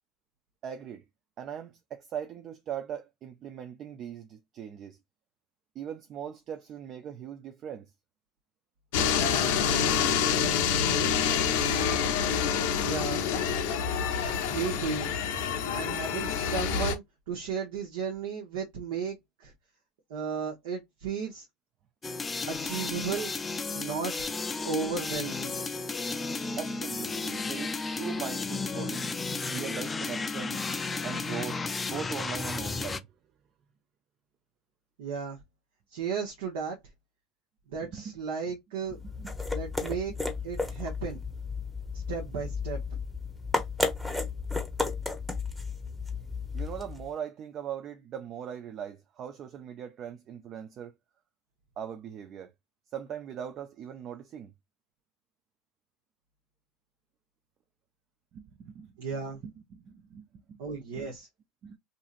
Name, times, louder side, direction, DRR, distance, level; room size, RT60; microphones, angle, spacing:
voice 1, 0.6-1.1 1.4-5.0 5.8-7.9 26.6-29.1 29.5-30.7 31.0-33.1 37.8-38.1 38.5-38.6 38.9-39.3 46.5-50.9 51.8-52.5 52.9-54.5 58.3-58.9 59.4-60.6 60.9-61.1 61.6-61.8, right 8 dB, 50° right, 0.5 m, -40 dB
sound 1, 8.9-16.9, left 7 dB, 75° left, 0.6 m, -27 dB
voice 2, 12.8-13.3 14.5-15.1 15.7-19.5 20.1-21.5 22.5-23.3 23.7-24.1 24.6-25.6 35.0-35.4 35.9-36.8 37.7-39.0 39.5-40.1 40.4-41.2 42.1-42.8 59.0-59.4 60.6-61.3, right 5 dB, 80° right, 0.9 m, -34 dB
sound 2, 22.0-33.0, left 3 dB, 20° left, 0.4 m, -33 dB
sound 3, 38.9-47.1, left 3 dB, 5° right, 0.8 m, -33 dB
2.7 x 2.6 x 2.5 m
hypercardioid pair, 85°, 0 cm